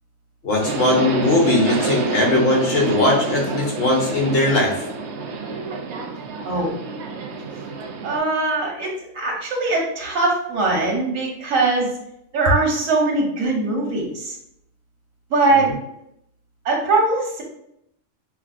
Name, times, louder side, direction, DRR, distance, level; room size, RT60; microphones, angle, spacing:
voice 1, 0.4-4.8, left 2 dB, 55° left, -1 dB, 1.0 m, -19 dB
Subway metro underground, 0.6-8.2, right 4 dB, 65° right, 0.8 m, -28 dB
voice 2, 8.0-8.9 9.1-11.9 12.3-14.4 15.3-15.7 16.6-17.4, right 3 dB, 85° right, -1 dB, 1.3 m, -21 dB
5.7 x 2.0 x 2.4 m, 0.77 s
omnidirectional pair, 1.3 m